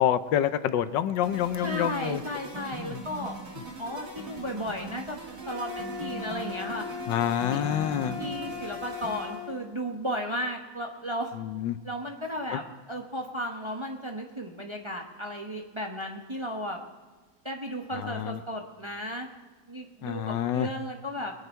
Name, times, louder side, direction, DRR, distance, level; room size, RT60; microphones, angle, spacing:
voice 1, 0.0-2.2 2.7-3.0 7.1-8.1 11.4-11.8 12.5-12.6 18.0-18.4 20.0-20.7, left 10 dB, 80° left, 12 dB, 1.4 m, -27 dB
sound 1, 1.2-9.6, right 1 dB, 45° right, 2.7 m, -41 dB
voice 2, 1.6-3.4 3.8-5.2 5.5-6.9 7.5-7.6 8.2-11.4 11.8-16.8 17.4-19.3 19.7-21.3, equal, 20° right, 2 dB, 0.9 m, -34 dB
sound 2, 5.4-9.5, left 6 dB, 75° right, 2.4 m, -38 dB
22.5 x 9.7 x 4.5 m, 1.4 s
omnidirectional pair, 2.0 m